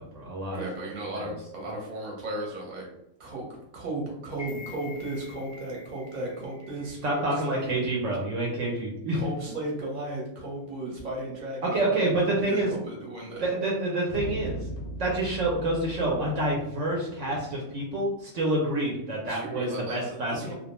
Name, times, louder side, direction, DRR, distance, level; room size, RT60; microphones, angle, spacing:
voice 1, 0.0-0.6 1.2-1.3 7.0-9.2 11.6-12.7 13.4-14.6 15.0-20.5, right 1 dB, 70° right, -3 dB, 0.9 m, -28 dB
voice 2, 0.5-2.9 3.2-3.5 3.7-7.7 9.1-13.5 19.2-20.5, right 1 dB, 40° right, -2 dB, 0.8 m, -35 dB
sound 1, 4.3-8.4 8.8-8.9, left 5 dB, 15° left, 0.6 m, -48 dB
sound 2, 14.1-18.1, equal, 60° left, 0.5 m, -39 dB
2.3 x 2.1 x 2.9 m, 0.85 s
omnidirectional pair, 1.4 m